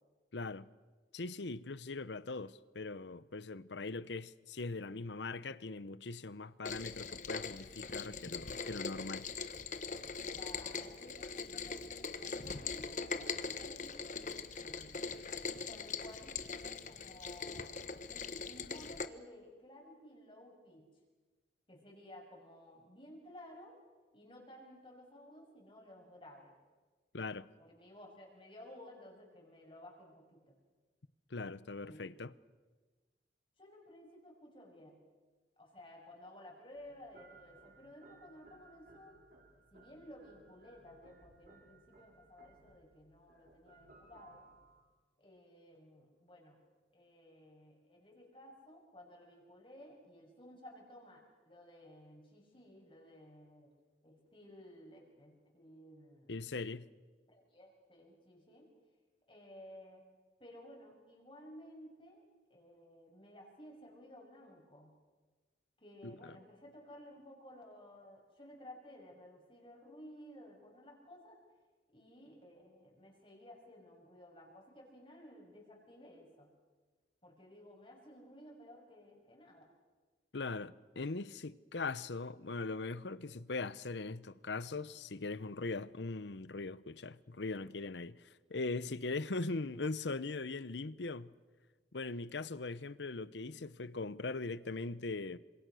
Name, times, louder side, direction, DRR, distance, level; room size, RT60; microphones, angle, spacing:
voice 1, 0.3-0.7 1.1-9.3 27.1-27.5 31.3-32.3 56.3-56.9 66.0-66.3 80.3-91.3 91.9-95.4, left 3 dB, 85° left, 0.9 m, -40 dB
Rain, 6.6-19.1, left 5 dB, 45° left, 1.2 m, -42 dB
voice 2, 10.3-15.1 15.5-17.8 18.0-20.9 21.7-23.8 24.1-26.5 27.6-30.5 31.9-32.1 33.6-35.0 35.6-39.3 39.7-44.5 45.2-46.6 46.9-53.7 54.0-56.4 57.3-58.7 59.3-60.0 60.4-62.2 62.5-64.9 65.8-71.4 71.9-76.5 77.2-79.6, left 1 dB, 30° left, 6.2 m, -55 dB
sound 1, 36.7-44.8, right 3 dB, 50° right, 5.0 m, -62 dB
28.5 x 26.5 x 6.4 m
head